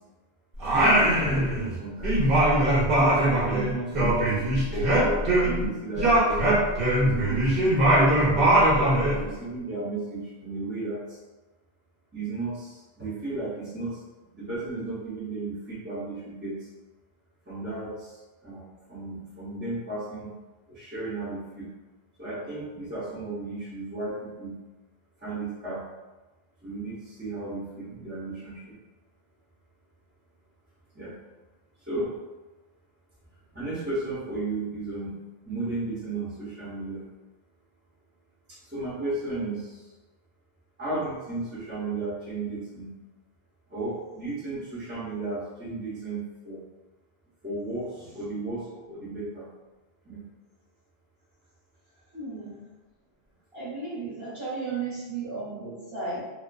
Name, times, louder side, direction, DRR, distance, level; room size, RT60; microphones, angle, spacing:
Singing, 0.6-1.8 2.0-5.7 6.0-9.2, right 1 dB, 65° right, 0.9 m, -21 dB
voice 1, 0.7-2.3 3.0-6.6 7.0-8.6 9.1-11.2 12.1-14.0 14.3-16.7 17.5-20.3 20.7-21.7 22.2-24.5 25.2-25.8 26.6-28.8 30.9-31.1 31.9-32.1 33.5-35.2 35.4-37.1 38.5-39.8 40.8-42.9 43.7-46.6 47.4-49.5 50.0-50.2, right 2 dB, 15° right, -10 dB, 0.5 m, -34 dB
voice 2, 52.1-52.6 53.5-56.2, right 4 dB, 30° right, -9 dB, 0.9 m, -34 dB
2.4 x 2.4 x 2.2 m, 1.2 s
omnidirectional pair, 1.0 m